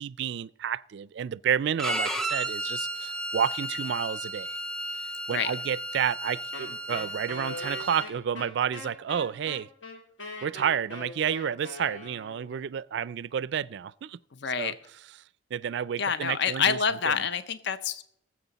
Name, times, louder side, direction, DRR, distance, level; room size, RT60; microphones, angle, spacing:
voice 1, 0.0-4.6 5.3-9.7 10.4-14.2 14.6-14.7 15.5-16.8, right 8 dB, 65° right, 0.3 m, -30 dB
Bowed string instrument, 1.8-8.1, right 1 dB, 5° left, 0.8 m, -33 dB
Wind instrument woodwind instrument, 6.5-12.6, left 2 dB, 85° left, 3.4 m, -41 dB
voice 2, 14.3-14.7 16.0-18.0, left 6 dB, 65° left, 0.7 m, -27 dB
19.0 x 7.6 x 4.0 m
head